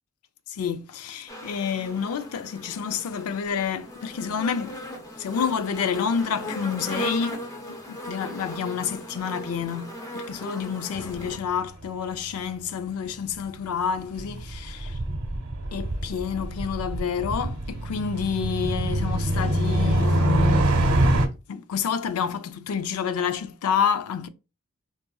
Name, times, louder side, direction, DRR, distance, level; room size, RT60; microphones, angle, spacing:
voice 1, 0.5-4.8 5.2-7.4 7.7-14.8 15.7-20.7 21.5-24.3, left 7 dB, 85° left, 0.4 m, -29 dB
sound 1, 1.3-11.4, equal, 15° left, 0.5 m, -37 dB
sound 2, 10.9-11.6 11.8-11.9 14.0-21.3, right 1 dB, 80° right, 0.9 m, -25 dB
3.7 x 2.5 x 2.2 m
head